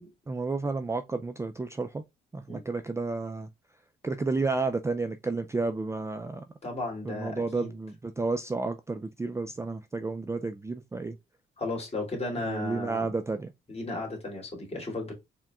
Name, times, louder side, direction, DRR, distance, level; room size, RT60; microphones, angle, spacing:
voice 1, 0.3-2.0 2.3-3.5 4.0-6.4 7.0-11.2 12.4-13.5, right 3 dB, 15° right, 0.4 m, -31 dB
voice 2, 6.6-7.7 11.6-13.1 13.7-15.1, left 2 dB, 30° left, 2.6 m, -35 dB
4.6 x 3.5 x 2.4 m
cardioid pair, 90°, 20 cm